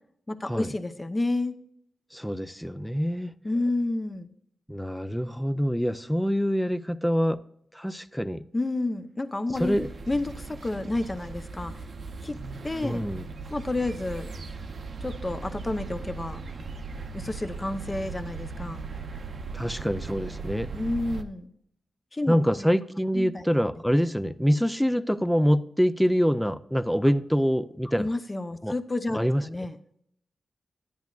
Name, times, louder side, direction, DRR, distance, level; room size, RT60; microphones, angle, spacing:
voice 1, 0.3-1.5 3.4-4.3 8.5-9.8 10.1-11.9 12.2-12.4 12.6-13.0 13.5-14.3 15.0-16.4 17.1-18.8 20.7-21.5 22.1-22.7 23.1-23.4 28.0-29.8, left 2 dB, 25° left, 0.8 m, -30 dB
voice 2, 2.1-3.3 4.7-7.4 7.7-8.4 9.6-9.9 12.8-13.2 19.5-20.7 22.3-28.1 28.6-28.7 29.1-29.4, equal, ahead, 0.4 m, -25 dB
sound 1, 9.5-21.2, right 4 dB, 60° right, 0.8 m, -38 dB
10.5 x 10.5 x 2.4 m
cardioid pair, 85°, 0 cm